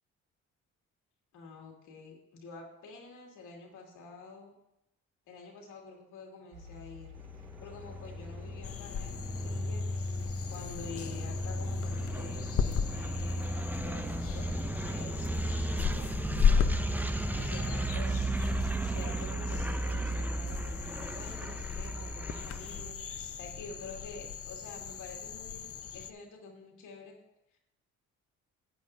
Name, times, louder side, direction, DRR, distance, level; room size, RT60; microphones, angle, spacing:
voice 1, 1.3-4.6 5.3-7.1 7.6-9.9 10.1-16.1 16.4-17.0 17.3-18.2 18.9-27.2, left 3 dB, 85° left, -1 dB, 2.4 m, -48 dB
sound 1, 6.5-24.3, left 5 dB, 80° right, 1.5 m, -49 dB
sound 2, 7.2-22.9, right 2 dB, 5° right, 0.4 m, -35 dB
sound 3, 8.6-26.1, left 7 dB, 50° left, 0.7 m, -35 dB
14.0 x 8.8 x 2.7 m, 0.83 s
cardioid pair, 90°, 30 cm